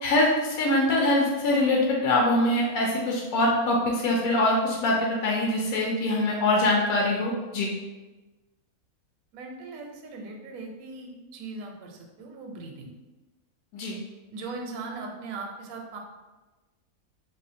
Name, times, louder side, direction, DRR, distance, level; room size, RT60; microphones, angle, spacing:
voice 1, 0.0-7.7 13.7-14.0, left 1 dB, 75° left, -2 dB, 1.0 m, -23 dB
voice 2, 9.3-12.9 14.3-16.0, right 3 dB, 75° right, 2 dB, 1.0 m, -39 dB
2.8 x 2.6 x 4.1 m, 1.2 s
omnidirectional pair, 1.5 m